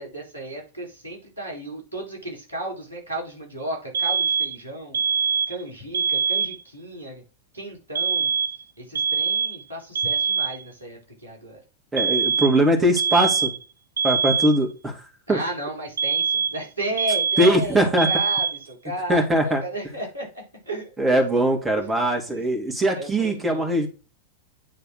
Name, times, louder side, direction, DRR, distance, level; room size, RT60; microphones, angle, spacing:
voice 1, 0.0-5.0 5.5-7.2 7.5-8.3 8.8-11.6 15.3-21.4 22.3-23.7, right 1 dB, 90° left, 0 dB, 3.1 m, -34 dB
sound 1, 3.9-4.6 4.9-5.6 5.9-6.6 8.0-8.6 9.0-9.6 10.0-10.6 12.0-12.6 13.0-13.6 14.0-14.6 16.0-16.7 17.0-17.6 18.0-18.6, right 6 dB, 70° right, 0.4 m, -23 dB
voice 2, 11.9-13.5 14.0-15.4 17.4-18.1 19.1-19.6 21.0-23.9, right 1 dB, 10° right, 2 dB, 1.9 m, -21 dB
9.1 x 3.4 x 3.9 m, 0.33 s
figure-of-eight pair, 90°, 0 cm